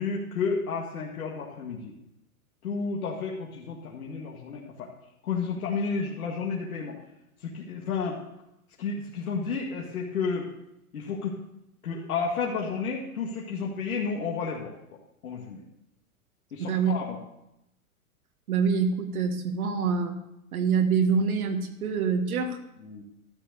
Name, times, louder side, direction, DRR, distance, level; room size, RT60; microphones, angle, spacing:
voice 1, 0.0-1.9 2.6-4.9 5.2-7.0 7.4-8.2 8.8-10.5 10.9-11.4 11.8-14.7 15.2-15.6 16.5-17.2 22.8-23.0, left 5 dB, 75° left, -3 dB, 2.1 m, -31 dB
voice 2, 16.6-17.0 18.5-20.2 20.5-22.6, right 5 dB, 70° right, 5 dB, 1.8 m, -25 dB
13.0 x 6.8 x 6.8 m, 0.85 s
hypercardioid pair, 115°, 44 cm